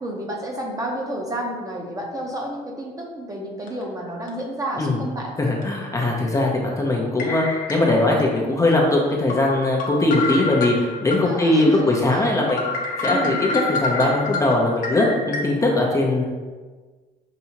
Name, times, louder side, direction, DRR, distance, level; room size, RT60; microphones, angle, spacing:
voice 1, 0.0-5.3 11.2-12.0 13.1-13.4, right 1 dB, 20° right, 0 dB, 0.8 m, -30 dB
sound 1, 3.7-3.8 4.3-4.4 5.6-5.7 7.2-8.2 8.7-8.8 9.3-11.2 11.6-11.7 12.1-12.2 12.5-15.4, left 3 dB, 50° left, 0.8 m, -28 dB
voice 2, 5.4-12.7 13.0-16.2, left 2 dB, 20° left, -2 dB, 0.6 m, -20 dB
5.7 x 2.7 x 2.8 m, 1.4 s
cardioid pair, 110°, 17 cm